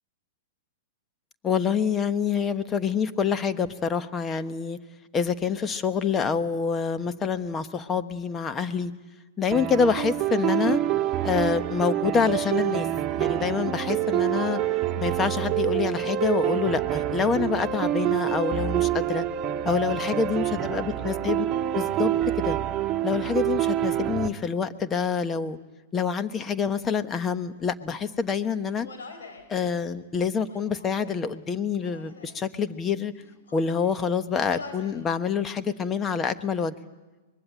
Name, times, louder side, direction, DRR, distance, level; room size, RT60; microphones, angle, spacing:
voice 1, 1.4-4.8 5.1-8.9 9.4-10.8 11.2-12.9 13.2-14.6 15.0-19.3 19.6-21.5 21.7-22.1 22.4-22.6 23.0-25.6 25.9-28.9 29.5-33.1 33.5-36.7, left 6 dB, 20° left, 11 dB, 1.2 m, -26 dB
sound 1, 9.5-24.3, right 12 dB, 30° right, 1.5 m, -26 dB
Human voice, 28.7-29.5 30.4-31.3 31.8-32.4 33.1-34.0 34.4-35.0 35.4-36.1, left 4 dB, 85° left, 4.3 m, -45 dB
24.0 x 21.0 x 9.0 m, 1.2 s
hypercardioid pair, 120°, 0 cm